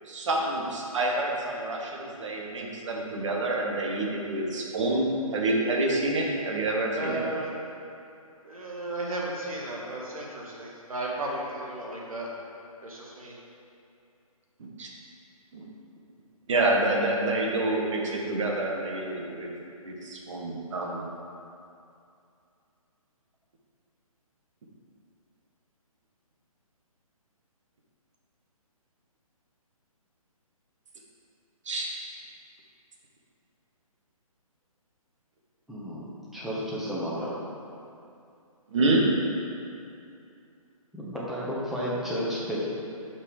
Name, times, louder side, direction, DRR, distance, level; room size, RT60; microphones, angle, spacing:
voice 1, 0.0-7.2 14.6-14.9 15.5-15.7 16.5-19.5 19.8-21.1 31.6-31.9 38.7-39.1, right 2 dB, 55° right, -1 dB, 1.3 m, -27 dB
voice 2, 6.9-7.5 8.4-12.3 12.8-13.3, right 2 dB, 70° right, -3 dB, 1.6 m, -34 dB
voice 3, 35.7-36.0 36.3-37.4 40.9-42.7, equal, ahead, -8 dB, 0.9 m, -32 dB
6.0 x 5.4 x 4.8 m, 2.6 s
figure-of-eight pair, 140°, 19 cm